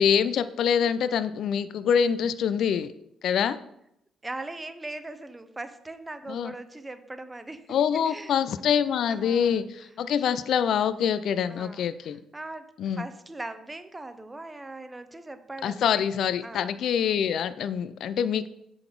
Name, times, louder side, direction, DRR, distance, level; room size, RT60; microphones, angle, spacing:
voice 1, 0.0-2.9 3.2-3.6 6.3-6.5 7.7-12.2 12.8-13.1 15.6-18.5, left 8 dB, 70° left, 14 dB, 0.3 m, -25 dB
voice 2, 4.2-7.7 8.1-8.3 9.1-9.6 11.5-11.8 12.3-16.1 16.4-16.7, right 2 dB, 15° right, 10 dB, 0.6 m, -40 dB
7.4 x 3.9 x 4.6 m, 0.79 s
cardioid pair, 90°, 0 cm